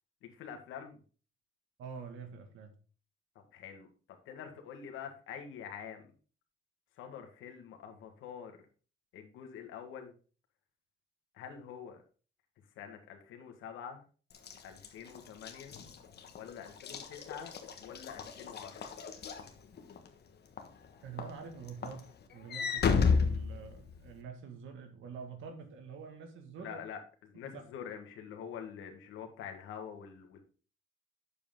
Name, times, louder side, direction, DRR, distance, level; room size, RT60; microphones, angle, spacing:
voice 1, 0.2-1.0 3.3-3.9 4.2-6.1 7.0-8.6 9.1-10.1 11.3-12.0 12.7-14.0 14.6-15.8 16.3-18.9 26.6-30.4, left 7 dB, 90° left, 4 dB, 1.6 m, -46 dB
voice 2, 1.8-2.7 21.0-26.8 27.3-27.4, right 6 dB, 80° right, 6 dB, 1.9 m, -46 dB
Walk footsteps / Slam, 14.3-20.1 20.6-20.8 21.2-24.2, left 5 dB, 55° left, 1.4 m, -33 dB
8.5 x 7.1 x 3.8 m, 0.38 s
cardioid pair, 90°, 20 cm